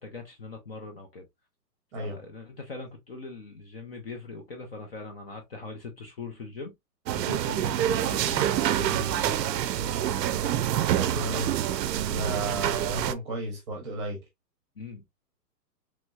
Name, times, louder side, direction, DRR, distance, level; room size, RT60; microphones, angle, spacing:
voice 1, 0.0-1.3 2.0-6.7 7.1-9.5 14.8-15.0, left 4 dB, 40° left, 0.5 m, -41 dB
sound 1, 7.1-13.1, right 11 dB, 85° right, 0.5 m, -27 dB
voice 2, 10.9-11.5 12.1-14.2, right 2 dB, 20° right, 0.7 m, -33 dB
3.1 x 2.9 x 2.2 m
hypercardioid pair, 165°, 49 cm